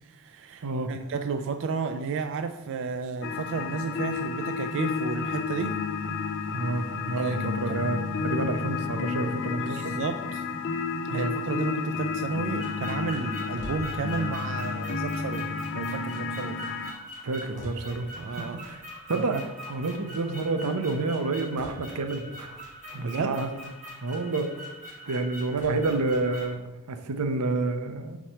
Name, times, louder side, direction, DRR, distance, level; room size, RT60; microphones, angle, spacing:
voice 1, 0.0-5.7 7.2-7.8 9.6-10.4 11.1-16.6 18.2-18.6 19.1-19.4 22.9-23.4, right 5 dB, 55° right, 7 dB, 0.3 m, -33 dB
sound 1, 3.2-16.9, left 5 dB, 55° left, 0.4 m, -31 dB
voice 2, 6.5-10.0 11.1-11.3 17.2-18.1 18.4-18.8 19.1-19.4 19.7-22.6 22.9-23.5 24.0-24.5 25.1-28.2, right 3 dB, 90° right, 8 dB, 0.7 m, -29 dB
sound 2, 12.6-26.5, equal, 35° right, 1.6 m, -42 dB
4.7 x 4.4 x 5.6 m, 1.0 s
head